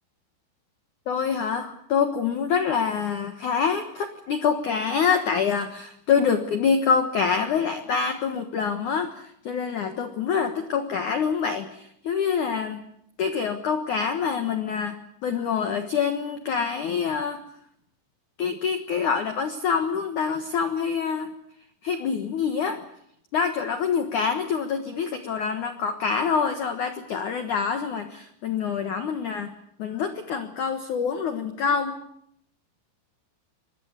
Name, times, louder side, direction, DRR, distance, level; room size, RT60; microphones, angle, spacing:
voice 1, 1.1-12.8 13.2-17.4 18.4-21.3 21.8-22.8 23.3-29.5 29.8-32.0, left 6 dB, 90° left, 7 dB, 1.7 m, -26 dB
24.0 x 20.5 x 8.2 m, 0.73 s
omnidirectional pair, 5.9 m